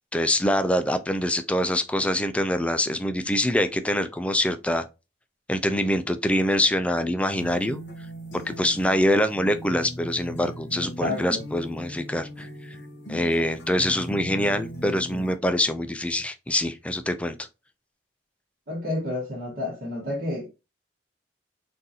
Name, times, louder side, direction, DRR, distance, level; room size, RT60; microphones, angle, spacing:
voice 1, 0.1-4.9 5.5-7.8 8.3-12.5 13.1-17.3, left 1 dB, 5° left, 0.3 m, -24 dB
sound 1, 7.3-15.3, equal, 85° left, 1.0 m, -39 dB
voice 2, 10.8-11.4 18.7-20.5, left 2 dB, 60° right, 1.1 m, -30 dB
3.8 x 2.5 x 2.7 m
head